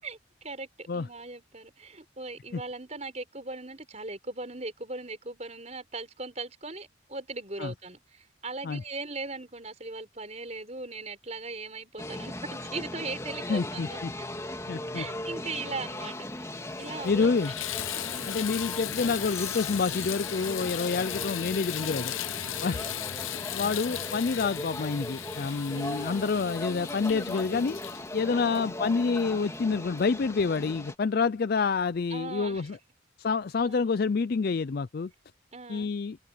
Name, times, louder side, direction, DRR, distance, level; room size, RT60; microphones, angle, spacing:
voice 1, 0.0-14.3 14.9-16.3 16.8-17.3 18.1-18.4 22.7-23.0 25.7-26.1 28.3-28.7 32.1-32.7 33.7-34.0 35.5-35.9, right 3 dB, 35° right, 5.4 m, -39 dB
sound 1, 12.0-30.9, left 1 dB, 15° left, 3.4 m, -38 dB
voice 2, 13.5-14.1 14.7-15.0 17.0-17.5 18.3-22.1 22.6-22.8 23.5-27.8 28.1-32.8 33.2-35.1 35.7-36.2, left 4 dB, 50° left, 0.4 m, -28 dB
Water tap faucet / Bathtub (filling or washing), 16.4-16.5 16.9-29.3 30.0-30.1 30.6-30.7, left 11 dB, 80° left, 0.8 m, -37 dB
head